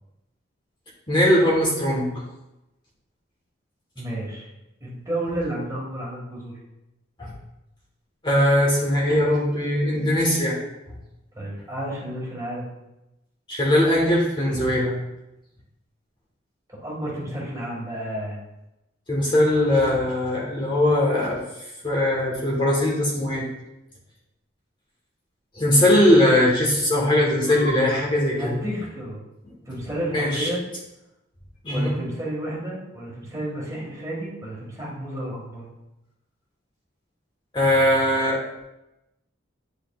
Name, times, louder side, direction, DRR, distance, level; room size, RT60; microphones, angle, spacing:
voice 1, 1.1-2.1 7.2-7.3 8.2-10.6 13.5-15.0 19.1-21.4 21.8-23.5 25.5-28.6 30.1-30.5 31.6-32.0 37.5-38.4, left 1 dB, 25° left, -4 dB, 1.4 m, -20 dB
voice 2, 4.0-4.5 4.8-6.6 11.3-12.7 16.7-18.4 28.4-29.2 29.7-30.6 31.7-35.7, right 1 dB, 15° right, -4 dB, 1.8 m, -31 dB
9.6 x 4.9 x 2.4 m, 0.93 s
head